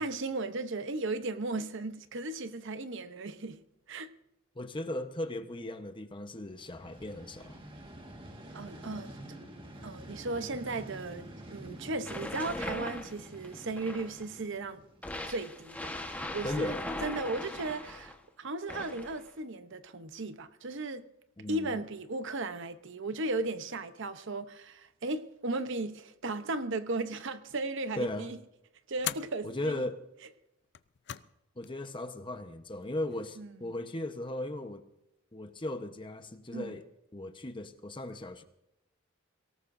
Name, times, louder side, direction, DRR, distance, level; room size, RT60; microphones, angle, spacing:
voice 1, 0.0-3.6 3.9-4.1 8.5-9.1 9.8-14.8 15.2-16.8 17.0-21.0 21.5-28.4 28.9-29.9 33.4-33.7 36.5-36.8, right 2 dB, 60° right, 0.9 m, -36 dB
voice 2, 4.5-7.6 16.4-16.8 21.4-21.8 28.0-28.3 29.4-30.0 31.6-34.8 35.3-36.9 37.1-38.4, left 1 dB, 25° left, 1.0 m, -37 dB
Vehicle, 6.5-15.5, right 1 dB, 25° right, 1.7 m, -48 dB
sound 1, 12.0-14.3 15.0-18.2 18.7-19.3, left 1 dB, 10° left, 1.3 m, -39 dB
sound 2, 27.5-27.9 29.0-29.4 30.6-31.4 31.6-31.7 32.8-33.4, left 11 dB, 55° left, 0.6 m, -40 dB
23.5 x 18.0 x 2.7 m
head